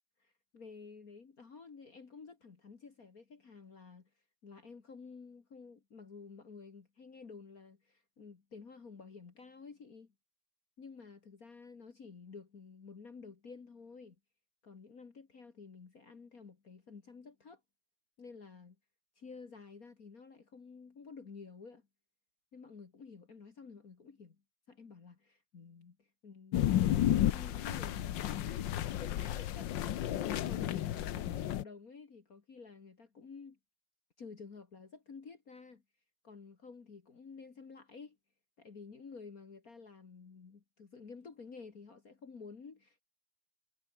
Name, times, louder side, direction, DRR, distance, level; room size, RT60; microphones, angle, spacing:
voice 1, 0.5-4.1 4.4-10.1 10.8-14.2 14.6-17.6 18.2-18.8 19.2-21.8 22.5-24.4 24.7-28.7 29.0-33.6 34.2-35.8 36.2-38.2 38.6-43.0, left 5 dB, 40° left, 2.2 m, -51 dB
sound 1, 26.5-31.6, left 12 dB, 65° left, 1.5 m, -32 dB
omnidirectional pair, 2.4 m